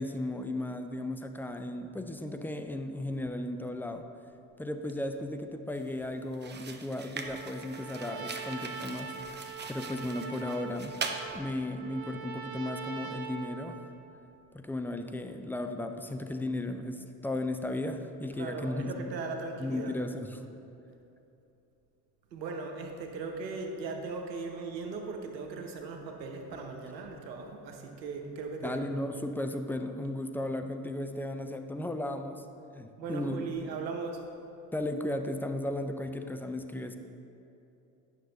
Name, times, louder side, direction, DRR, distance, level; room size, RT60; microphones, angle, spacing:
voice 1, 0.0-4.0 4.6-9.1 9.7-11.0 11.3-13.8 14.5-19.1 19.6-20.4 28.6-32.5 32.7-33.4 34.7-37.0, left 1 dB, 5° left, 6 dB, 0.4 m, -35 dB
sound 1, 5.7-5.9 6.3-11.3, right 4 dB, 20° right, 0.8 m, -41 dB
Trumpet, 7.2-14.0, right 5 dB, 45° right, 1.1 m, -42 dB
voice 2, 18.3-20.0 22.3-29.0 33.0-34.2, right 4 dB, 90° right, 3 dB, 0.9 m, -38 dB
9.3 x 6.3 x 3.9 m, 2.9 s
hypercardioid pair, 55°, 50 cm